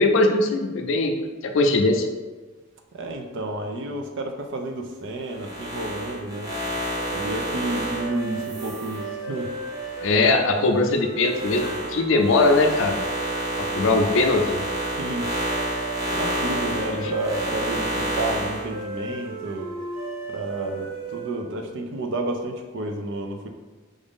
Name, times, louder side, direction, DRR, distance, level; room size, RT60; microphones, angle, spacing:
voice 1, 0.0-2.1 10.0-13.0 13.7-14.6 16.9-17.1, left 2 dB, 60° left, 4 dB, 0.5 m, -20 dB
voice 2, 2.9-6.5 7.1-9.5 14.9-15.3 16.1-19.7 20.3-23.5, right 2 dB, 60° right, 4 dB, 0.5 m, -30 dB
sound 1, 5.3-10.4 10.8-18.6, equal, 15° right, 0.9 m, -30 dB
sound 2, 6.4-21.5, right 4 dB, 85° right, 1.4 m, -35 dB
4.9 x 2.6 x 3.6 m, 1.3 s
head